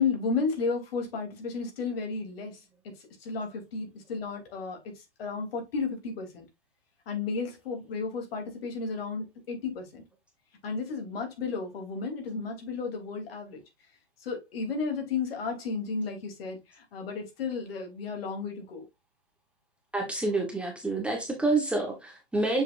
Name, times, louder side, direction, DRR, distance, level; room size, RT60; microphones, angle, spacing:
voice 1, 0.0-2.6 2.8-2.9 3.2-4.9 5.2-6.4 7.1-10.0 10.6-13.6 14.2-18.9, left 4 dB, 60° left, 3.2 m, -33 dB
voice 2, 19.9-22.6, right 2 dB, 5° right, 1.2 m, -28 dB
7.1 x 5.8 x 2.5 m
hypercardioid pair, 135°, 34 cm